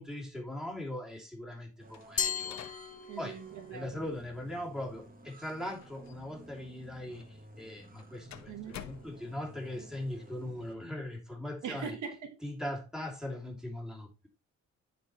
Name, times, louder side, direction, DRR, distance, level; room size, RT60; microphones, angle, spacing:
voice 1, 0.0-2.8 3.2-3.4 3.7-11.9 12.4-14.3, left 1 dB, ahead, 3.1 m, -40 dB
sound 1, 1.8-10.7, right 3 dB, 30° right, 1.5 m, -53 dB
sound 2, 1.9-9.7, left 9 dB, 65° left, 1.1 m, -53 dB
Glass, 2.2-3.6, left 7 dB, 25° left, 0.5 m, -35 dB
voice 2, 3.1-4.0 8.5-8.9 11.6-12.4, right 7 dB, 75° right, 1.5 m, -41 dB
11.0 x 4.9 x 3.2 m
cardioid pair, 90°, 30 cm